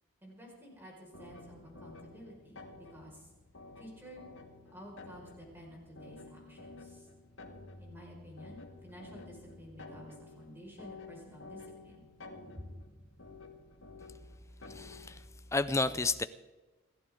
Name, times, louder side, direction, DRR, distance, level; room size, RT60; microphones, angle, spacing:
voice 1, 0.2-3.3 3.8-4.3 4.7-7.1 7.8-12.1 12.6-12.7, equal, 10° right, -3 dB, 5.4 m, -51 dB
sound 1, 1.1-15.3, left 3 dB, 60° left, 2.0 m, -52 dB
voice 2, 14.7-15.2 15.5-16.2, left 3 dB, 15° left, 13 dB, 0.5 m, -31 dB
28.5 x 11.5 x 3.8 m, 1.2 s
head